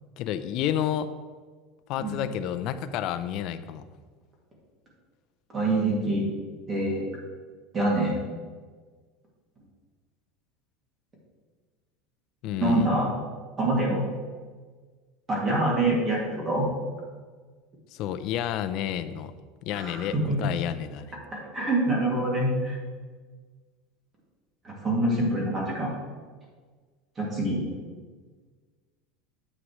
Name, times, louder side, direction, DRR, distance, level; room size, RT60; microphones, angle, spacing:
voice 1, 0.2-1.1 1.9-3.9 12.4-12.9 17.9-19.3 19.6-21.1, left 10 dB, 45° left, 10 dB, 0.5 m, -30 dB
voice 2, 5.5-6.3 6.7-7.1 7.7-8.2 12.6-13.1 13.6-14.0 15.3-16.7 19.7-20.4 21.3-22.8 24.6-25.9 27.2-27.6, right 1 dB, 20° right, -3 dB, 2.3 m, -25 dB
9.6 x 7.3 x 3.1 m, 1.5 s
supercardioid pair, 160°, 0 cm